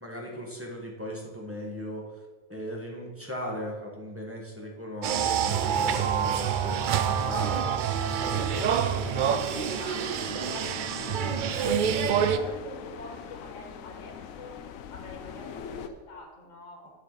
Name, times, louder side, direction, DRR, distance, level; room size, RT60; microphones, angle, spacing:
voice 1, 0.0-2.2 2.5-7.6, equal, 10° right, -2 dB, 1.3 m, -38 dB
sound 1, 5.0-12.4, right 8 dB, 85° right, 0.4 m, -27 dB
voice 2, 5.6-5.9 8.2-14.6 14.9-16.9, left 2 dB, 65° left, 1 dB, 1.6 m, -45 dB
sound 2, 8.3-15.9, left 7 dB, 85° left, 1.0 m, -42 dB
9.1 x 6.8 x 4.0 m, 1.4 s
omnidirectional pair, 1.4 m